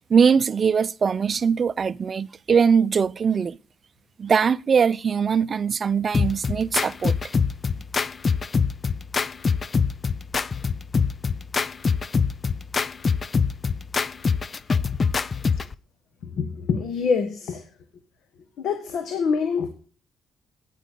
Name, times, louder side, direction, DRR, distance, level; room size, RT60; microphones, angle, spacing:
voice 1, 0.1-3.6 4.2-7.1, right 6 dB, 45° right, 0.5 m, -21 dB
sound 1, 6.1-15.7, left 5 dB, 35° left, 0.5 m, -24 dB
voice 2, 16.2-17.6 18.6-19.7, left 5 dB, 75° left, 1.5 m, -25 dB
9.3 x 9.0 x 7.5 m
cardioid pair, 90°, 0 cm